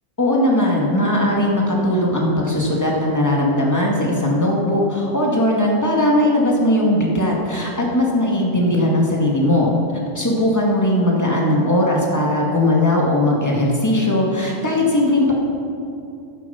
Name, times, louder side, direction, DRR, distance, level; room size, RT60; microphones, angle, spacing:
voice 1, 0.2-9.7 10.1-15.3, left 1 dB, 10° left, -2 dB, 1.9 m, -18 dB
15.0 x 9.1 x 5.7 m, 2.6 s
omnidirectional pair, 1.6 m